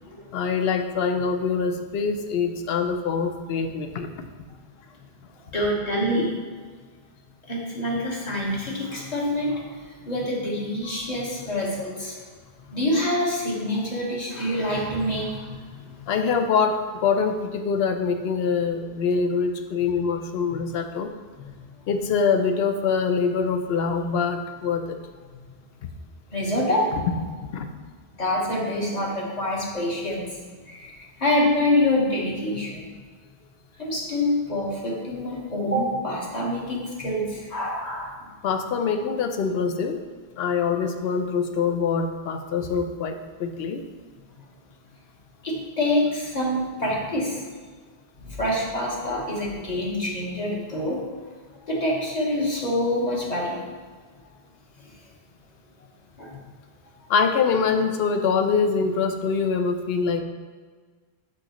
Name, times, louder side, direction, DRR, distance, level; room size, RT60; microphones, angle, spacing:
voice 1, 0.3-4.3 16.1-21.1 21.9-25.0 26.9-27.0 27.5-27.7 38.4-40.0 40.4-43.8 57.1-60.2, left 5 dB, 75° left, 7 dB, 0.8 m, -24 dB
voice 2, 5.5-6.3 7.5-9.6 10.0-12.2 12.7-15.8 21.4-21.5 26.3-26.9 28.2-30.3 30.7-30.9 31.2-32.8 33.8-38.2 45.4-47.4 48.2-51.0 51.7-53.6 56.2-56.4, left 1 dB, 40° left, -3 dB, 1.3 m, -26 dB
6.2 x 5.8 x 3.0 m, 1.5 s
omnidirectional pair, 1.1 m